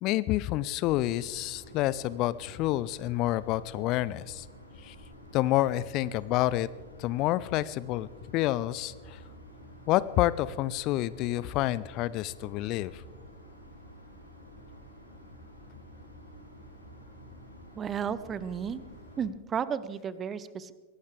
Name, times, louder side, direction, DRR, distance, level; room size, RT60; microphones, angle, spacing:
voice 1, 0.0-4.5 4.8-5.0 5.3-6.7 7.0-9.2 9.9-13.0, left 15 dB, 40° left, 19 dB, 0.5 m, -28 dB
sound 1, 0.8-19.2, equal, 85° left, 4.4 m, -50 dB
voice 2, 17.7-18.8 19.2-20.7, right 7 dB, 25° right, 16 dB, 0.8 m, -33 dB
23.0 x 18.0 x 3.4 m, 1.3 s
figure-of-eight pair, 90°, 0 cm